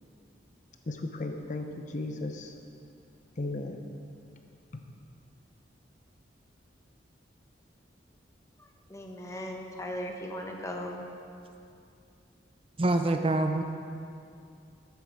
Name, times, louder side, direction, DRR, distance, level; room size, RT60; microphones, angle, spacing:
voice 1, 0.9-2.5 3.4-3.9 4.7-4.8, left 2 dB, 45° left, 5 dB, 0.7 m, -35 dB
voice 2, 8.6-11.1, equal, 15° left, 2 dB, 1.0 m, -38 dB
voice 3, 12.8-13.6, right 2 dB, 30° right, 6 dB, 0.5 m, -25 dB
12.5 x 8.1 x 4.8 m, 2.5 s
head